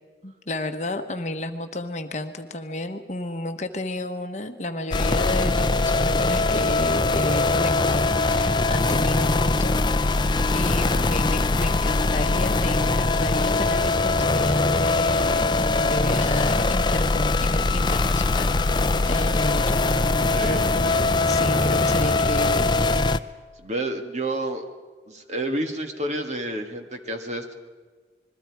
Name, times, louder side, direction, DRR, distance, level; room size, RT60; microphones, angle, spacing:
voice 1, 0.2-9.8 10.1-18.7 19.1-19.8 20.4-22.7, left 1 dB, 40° left, 7 dB, 1.1 m, -31 dB
sound 1, 4.9-23.2, left 3 dB, 25° left, 0.5 m, -22 dB
voice 2, 20.3-20.6 23.6-24.7 25.1-27.5, right 1 dB, 40° right, 5 dB, 1.7 m, -29 dB
27.0 x 21.5 x 4.7 m, 1.5 s
head